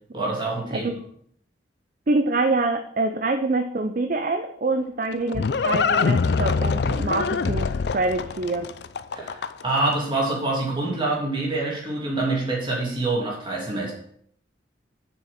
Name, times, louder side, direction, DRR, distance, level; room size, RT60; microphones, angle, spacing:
voice 1, 0.1-0.9 9.1-13.9, right 2 dB, 25° right, -4 dB, 2.8 m, -26 dB
voice 2, 2.1-8.7, right 3 dB, 45° right, 7 dB, 0.5 m, -25 dB
Livestock farm animals working animals, 4.7-9.8, left 5 dB, 60° left, 0.4 m, -24 dB
7.4 x 6.3 x 5.7 m, 0.66 s
head